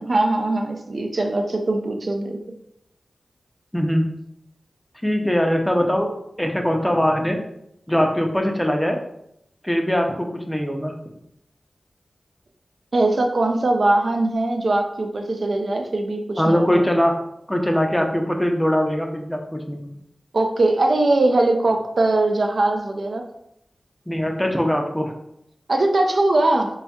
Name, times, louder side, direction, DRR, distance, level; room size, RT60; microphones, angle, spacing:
voice 1, 0.0-2.4 12.9-16.8 20.3-23.2 25.7-26.7, right 2 dB, 60° right, 4 dB, 0.4 m, -21 dB
voice 2, 3.7-4.1 5.0-6.1 6.4-7.4 7.9-9.0 9.6-10.9 16.4-17.2 17.5-19.9 24.1-25.1, equal, 5° left, 3 dB, 0.5 m, -21 dB
4.1 x 3.3 x 2.3 m, 0.78 s
wide cardioid pair, 70°, 0 cm